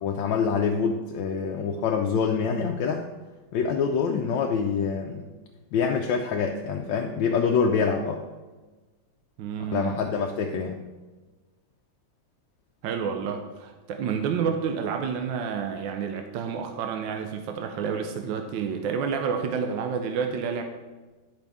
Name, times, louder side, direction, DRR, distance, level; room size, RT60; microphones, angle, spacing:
voice 1, 0.0-3.1 3.5-5.3 5.7-8.2 9.6-10.8, left 6 dB, 75° left, 2 dB, 1.2 m, -26 dB
voice 2, 9.4-10.0 12.8-20.6, right 6 dB, 75° right, 5 dB, 1.3 m, -29 dB
10.5 x 5.3 x 3.5 m, 1.2 s
omnidirectional pair, 2.3 m